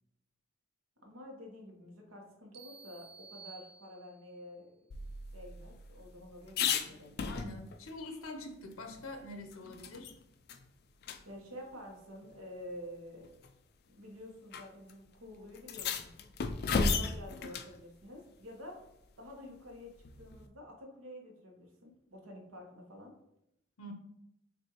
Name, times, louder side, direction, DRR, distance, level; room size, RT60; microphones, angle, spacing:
voice 1, 1.0-5.0 5.3-7.3 11.2-13.3 13.9-16.1 16.6-18.8 19.2-19.9 20.2-23.1, left 1 dB, 80° right, 1 dB, 1.2 m, -49 dB
sound 1, 2.5-4.4, right 5 dB, 50° right, 0.6 m, -53 dB
sound 2, 4.9-7.9 8.3-8.4 8.7-10.2 10.5-10.6 11.0-11.2 12.2-12.3 13.2-13.5 14.5-14.6 14.9-15.0 15.6-17.8 20.0-20.5, left 5 dB, 50° left, 0.4 m, -35 dB
voice 2, 7.3-10.1 23.8-23.9, left 2 dB, 80° left, 5 dB, 0.7 m, -45 dB
6.0 x 2.6 x 2.9 m, 0.80 s
head